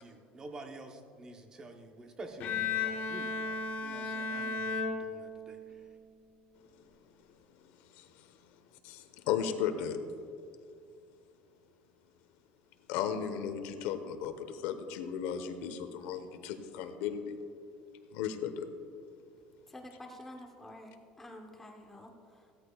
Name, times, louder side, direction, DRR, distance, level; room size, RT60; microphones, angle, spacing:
voice 1, 0.0-5.9, right 2 dB, 20° right, 4 dB, 0.9 m, -48 dB
Bowed string instrument, 2.4-5.7, left 4 dB, 50° left, 1.0 m, -35 dB
voice 2, 7.9-8.3 8.8-10.0 12.9-17.3 18.1-18.7, left 8 dB, 80° left, 8 dB, 1.0 m, -35 dB
voice 3, 19.7-22.5, left 1 dB, 10° left, 1 dB, 0.9 m, -49 dB
16.0 x 13.5 x 2.3 m, 2.3 s
cardioid pair, 175°, 4 cm